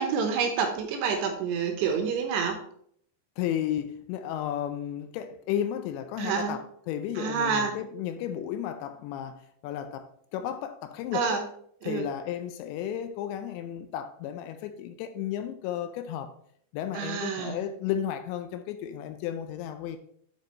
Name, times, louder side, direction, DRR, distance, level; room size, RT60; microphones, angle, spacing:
voice 1, 0.0-2.6 6.2-6.6 7.2-7.8 11.1-11.4 11.8-12.1 16.9-17.6, right 6 dB, 75° right, 2.7 m, -28 dB
voice 2, 3.4-11.4 11.8-16.3 16.7-20.0, left 10 dB, 85° left, 2.7 m, -33 dB
9.2 x 4.6 x 4.2 m
omnidirectional pair, 5.3 m